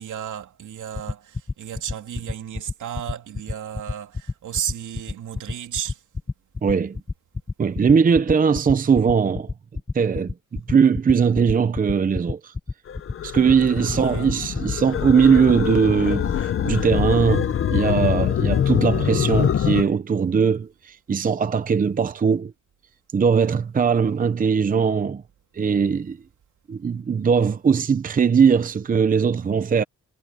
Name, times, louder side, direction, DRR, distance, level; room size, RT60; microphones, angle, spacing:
voice 1, 0.0-6.0 13.8-14.3, right 9 dB, 75° right, 3.0 m, -33 dB
sound 1, 0.9-16.3, left 3 dB, 15° left, 1.0 m, -28 dB
voice 2, 6.6-7.0 7.6-9.5 9.9-12.5 13.2-22.5 23.1-25.2 25.5-26.2 26.7-29.8, right 6 dB, 30° right, 0.7 m, -20 dB
sound 2, 12.9-19.8, left 9 dB, 45° left, 0.7 m, -24 dB
wide cardioid pair, 165°, 30 cm